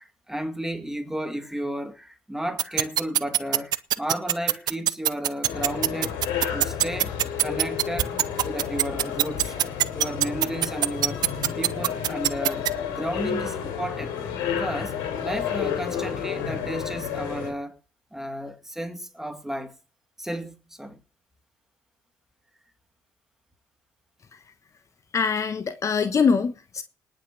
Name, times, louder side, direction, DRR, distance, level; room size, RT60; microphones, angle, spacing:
voice 1, 0.0-6.2 6.5-8.2 8.4-9.5 9.9-11.2 11.6-14.1 14.5-17.8 18.1-19.8 20.2-21.0, right 1 dB, 5° right, 2.3 m, -33 dB
sound 1, 2.6-12.7, right 12 dB, 60° right, 0.7 m, -21 dB
sound 2, 5.4-17.5, left 8 dB, 75° left, 3.4 m, -31 dB
voice 2, 25.1-26.8, left 5 dB, 40° left, 1.3 m, -23 dB
19.0 x 6.4 x 6.2 m
hypercardioid pair, 65°, 8 cm